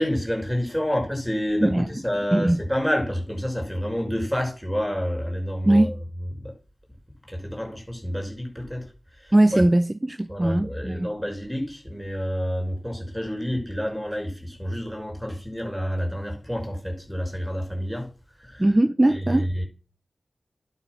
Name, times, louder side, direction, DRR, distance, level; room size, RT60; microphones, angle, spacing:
voice 1, 0.0-6.0 6.3-6.5 7.3-8.9 9.2-9.6 10.3-18.1 18.4-18.7 19.1-19.6, equal, ahead, 5.5 m, -28 dB
voice 2, 9.3-11.1 18.6-19.5, right 1 dB, 25° right, 0.5 m, -20 dB
11.0 x 5.7 x 6.0 m
cardioid pair, 50°, 0 cm